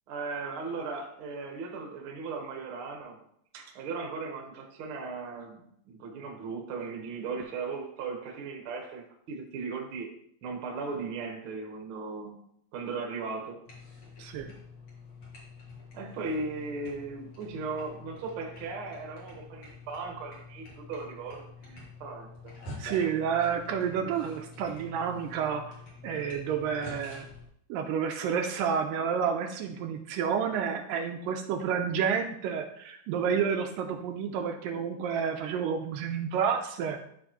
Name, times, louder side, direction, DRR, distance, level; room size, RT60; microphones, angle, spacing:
voice 1, 0.1-3.2 3.5-10.1 10.4-12.4 12.7-13.6 15.9-22.3, right 4 dB, 55° right, 1 dB, 1.5 m, -37 dB
sound 1, 13.7-27.5, left 3 dB, 45° left, 2.2 m, -47 dB
voice 2, 14.2-14.5 22.8-25.6 26.0-27.3 27.7-37.0, right 7 dB, 80° right, 4 dB, 2.2 m, -30 dB
13.0 x 4.3 x 3.1 m, 0.70 s
omnidirectional pair, 4.1 m